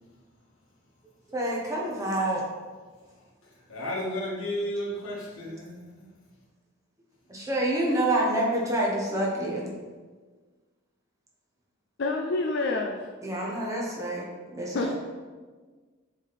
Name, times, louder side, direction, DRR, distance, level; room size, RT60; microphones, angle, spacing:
voice 1, 1.3-2.4 7.3-9.7 13.2-14.9, right 1 dB, 15° right, -3 dB, 1.0 m, -27 dB
voice 2, 3.7-6.1, equal, 85° left, -5 dB, 1.8 m, -33 dB
voice 3, 12.0-13.0 14.7-14.9, left 3 dB, 55° left, 2 dB, 0.4 m, -27 dB
7.3 x 3.6 x 4.1 m, 1.4 s
head